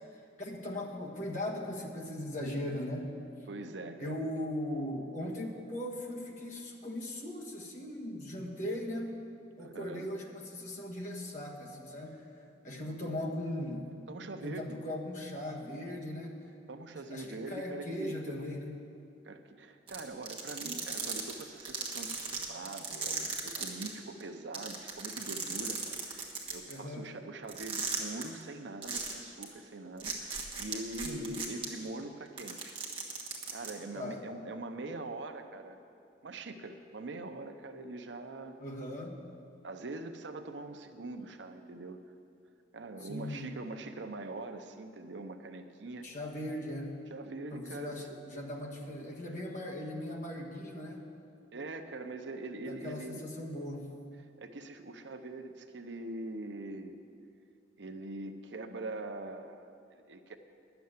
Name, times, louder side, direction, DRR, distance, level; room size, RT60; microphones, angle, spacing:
voice 1, 0.4-3.1 4.0-9.3 9.6-12.2 12.6-13.9 14.4-16.3 17.1-18.8 26.7-27.1 31.0-31.3 33.9-34.2 38.6-39.2 43.0-43.5 46.0-47.0 47.5-51.0 52.7-53.9, left 1 dB, 45° left, -1 dB, 1.5 m, -39 dB
voice 2, 3.5-4.3 9.6-10.1 14.1-14.8 16.7-18.5 19.2-32.8 33.5-35.8 36.2-38.6 39.6-42.0 42.7-46.1 47.1-48.1 51.5-53.2 54.2-57.0 57.8-60.4, right 2 dB, 80° right, 7 dB, 0.7 m, -43 dB
sound 1, 19.9-23.9 24.2-24.3 24.5-26.7 27.5-28.2 28.8-29.1 29.4-29.5 30.0-31.6 32.3-33.7, right 5 dB, 30° right, 1.4 m, -36 dB
10.5 x 7.0 x 9.5 m, 2.5 s
head